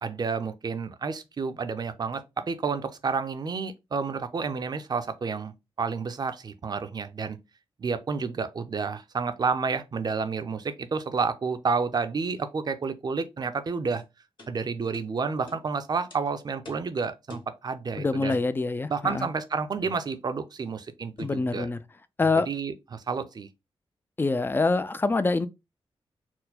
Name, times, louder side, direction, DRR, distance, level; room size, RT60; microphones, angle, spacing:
voice 1, 0.0-7.4 7.8-14.0 14.5-18.4 18.9-21.7 22.4-23.5, right 5 dB, 45° right, 0.6 m, -30 dB
sound 1, 14.0-14.1 14.4-14.5 14.9-15.1 15.5-15.6 16.1-16.2 16.7-16.9 17.3-17.5 18.3-18.5 19.8-20.1 21.2-21.4 22.2-22.5, left 3 dB, 55° left, 1.8 m, -45 dB
voice 2, 18.0-19.3 21.2-21.8 22.2-22.5 24.2-25.5, left 3 dB, 20° left, 0.4 m, -25 dB
4.4 x 2.1 x 4.0 m
wide cardioid pair, 110°, 10 cm